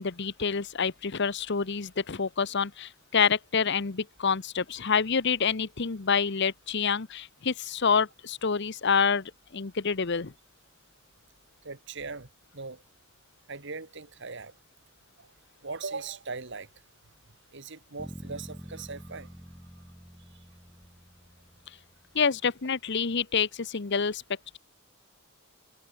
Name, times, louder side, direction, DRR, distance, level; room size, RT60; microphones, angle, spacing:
voice 1, 0.0-10.3 22.1-24.2, left 6 dB, 55° left, 0.9 m, -27 dB
voice 2, 11.6-12.3 12.5-12.8 13.5-14.5 15.2-15.3 15.6-16.7 17.5-19.3, right 4 dB, 60° right, 2.2 m, -39 dB
sound 1, 18.0-22.1, equal, 5° right, 1.3 m, -46 dB
head